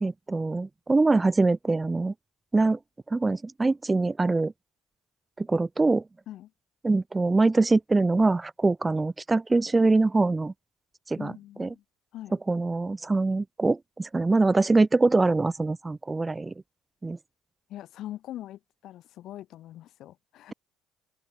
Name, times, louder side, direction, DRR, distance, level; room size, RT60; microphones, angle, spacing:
voice 1, 0.0-2.1 2.5-2.8 3.1-4.5 5.4-6.0 6.8-10.5 11.1-11.3 11.6-11.7 12.5-16.5 17.0-17.2, right 3 dB, 20° right, 0.3 m, -23 dB
voice 2, 11.2-11.8 12.1-12.4 17.7-20.5, left 13 dB, 65° left, 2.4 m, -42 dB
open air
supercardioid pair, 80°, 0 cm